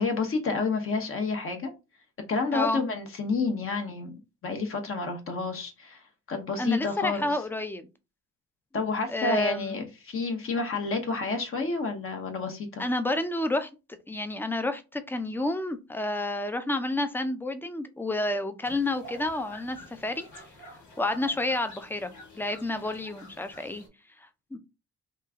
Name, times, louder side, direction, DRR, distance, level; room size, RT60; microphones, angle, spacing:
voice 1, 0.0-1.7 2.3-4.1 4.4-6.0 6.3-7.3 8.7-12.9, left 4 dB, 45° left, 0.9 m, -29 dB
voice 2, 6.6-7.9 9.1-9.8 12.8-13.7 14.1-20.3 21.0-23.8 24.2-24.6, left 2 dB, 5° left, 0.5 m, -30 dB
sound 1, 18.6-23.9, equal, 75° left, 1.4 m, -49 dB
3.1 x 2.3 x 3.5 m
cardioid pair, 90°, 30 cm